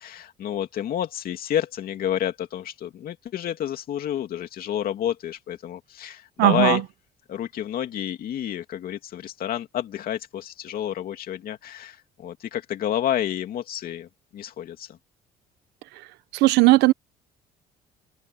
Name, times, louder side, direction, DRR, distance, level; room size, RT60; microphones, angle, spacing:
voice 1, 0.0-6.8 7.3-15.0, left 10 dB, 60° left, 2.7 m, -29 dB
voice 2, 6.4-6.8 16.3-16.9, right 19 dB, 90° right, 0.9 m, -17 dB
cardioid pair, 110°, 17 cm